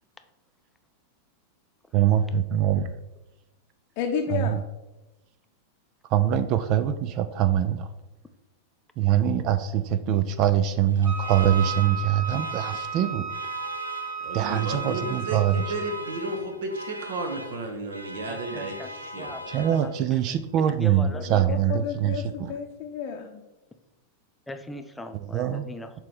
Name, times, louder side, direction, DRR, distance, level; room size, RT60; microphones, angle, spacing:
voice 1, 1.9-2.9 4.3-4.6 6.1-7.9 9.0-13.3 14.3-15.6 18.5-18.6 19.5-22.5 25.3-25.7, right 10 dB, 40° right, 12 dB, 0.4 m, -23 dB
voice 2, 4.0-4.6 21.1-23.4, left 7 dB, 45° left, 1 dB, 0.7 m, -31 dB
Alarm, 10.8-20.2, left 1 dB, 90° right, 0.6 m, -40 dB
Wind instrument woodwind instrument, 11.0-16.3, right 7 dB, 20° right, 0.8 m, -34 dB
voice 3, 14.2-19.7, right 2 dB, 60° right, 4 dB, 1.1 m, -33 dB
voice 4, 18.3-21.2 24.5-26.0, left 2 dB, 5° left, 8 dB, 0.6 m, -40 dB
7.4 x 3.2 x 5.2 m, 1.0 s
figure-of-eight pair, 90°, 0 cm